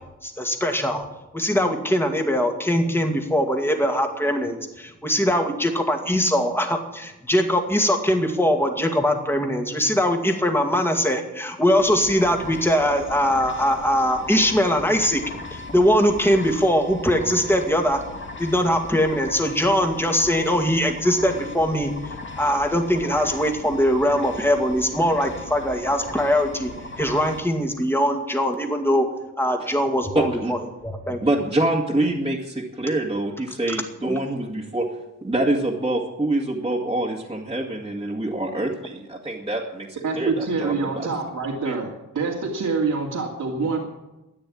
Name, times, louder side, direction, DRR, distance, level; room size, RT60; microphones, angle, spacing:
voice 1, 0.2-1.1 1.3-15.2 15.5-18.0 18.4-26.7 27.0-29.1 29.4-31.2 34.0-34.2, equal, 5° left, 4 dB, 2.2 m, -21 dB
sound 1, 11.8-27.4, left 2 dB, 35° left, 2.1 m, -37 dB
voice 2, 30.1-30.5 31.2-34.9 35.2-41.1 41.6-41.7, right 1 dB, 15° right, -3 dB, 2.1 m, -25 dB
voice 3, 40.0-41.9 42.1-43.8, right 4 dB, 65° right, -2 dB, 2.4 m, -26 dB
13.5 x 9.6 x 8.7 m, 0.98 s
wide cardioid pair, 110°, 32 cm